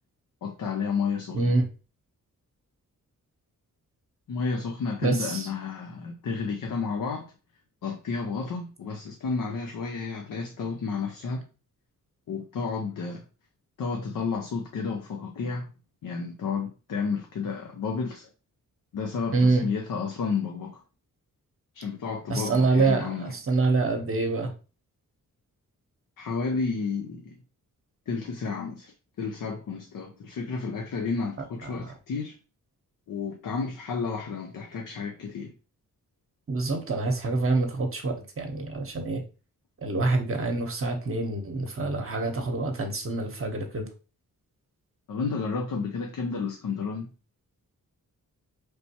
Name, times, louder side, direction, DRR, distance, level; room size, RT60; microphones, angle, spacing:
voice 1, 0.4-1.4 4.3-7.3 7.8-11.4 12.3-13.2 13.8-15.7 16.0-18.3 18.9-20.8 21.7-23.3 26.2-27.4 28.1-32.4 33.1-35.5 45.1-47.1, left 5 dB, 70° left, 0.6 m, -31 dB
voice 2, 1.3-1.6 5.0-5.5 19.3-19.7 22.3-24.5 31.6-31.9 36.5-39.2 39.8-43.9, right 3 dB, 40° right, 0.9 m, -26 dB
4.3 x 3.4 x 2.8 m
wide cardioid pair, 125°, 33 cm